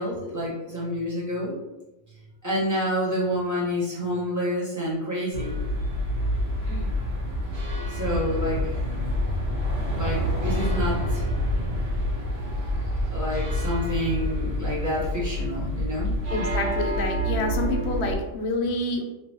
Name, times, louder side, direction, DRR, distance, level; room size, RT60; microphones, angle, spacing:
voice 1, 0.0-1.6 2.4-5.6 7.9-8.7 9.9-11.2 13.1-16.1, equal, 15° right, -7 dB, 1.2 m, -28 dB
sound 1, 5.3-18.1, equal, 85° right, 1.4 m, -27 dB
voice 2, 16.3-19.1, left 2 dB, 70° left, 3 dB, 0.8 m, -28 dB
3.2 x 2.8 x 3.0 m, 0.99 s
omnidirectional pair, 1.2 m